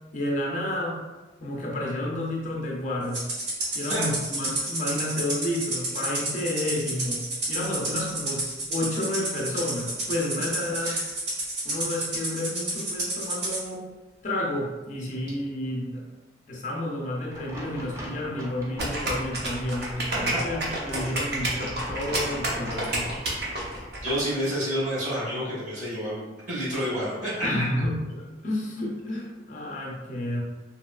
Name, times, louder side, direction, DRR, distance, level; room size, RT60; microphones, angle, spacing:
voice 1, 0.1-1.0 1.4-3.2 3.7-11.0 11.6-13.8 14.2-16.0 16.5-23.1 27.4-30.4, left 1 dB, 45° left, -2 dB, 0.5 m, -30 dB
Rattle (instrument), 3.1-13.6, right 2 dB, 85° right, 1.0 m, -30 dB
sound 1, 17.3-23.9, equal, 15° right, 0.5 m, -41 dB
sound 2, 18.8-24.1, right 1 dB, 60° right, 0.7 m, -29 dB
voice 2, 24.0-27.6, equal, 40° right, -8 dB, 1.3 m, -29 dB
2.9 x 2.7 x 2.3 m, 1.2 s
head